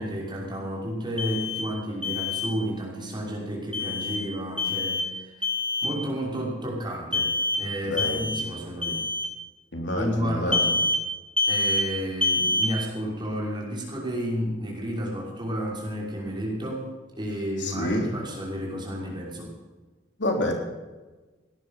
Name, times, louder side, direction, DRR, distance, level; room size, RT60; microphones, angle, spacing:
voice 1, 0.0-5.5 5.8-9.0 10.0-10.7 11.5-19.5, equal, 25° right, -3 dB, 5.8 m, -31 dB
Alarm, 1.2-1.6 2.0-2.5 3.7-4.2 4.6-5.1 5.4-5.9 7.1-7.6 8.0-8.4 8.8-9.3 10.5-11.0 11.4-11.8 12.2-12.7, left 2 dB, 5° left, 2.0 m, -26 dB
voice 2, 7.8-8.3 9.7-10.8 17.6-18.1 20.2-20.5, left 1 dB, 80° left, 2 dB, 3.6 m, -28 dB
17.5 x 11.5 x 5.8 m, 1.2 s
head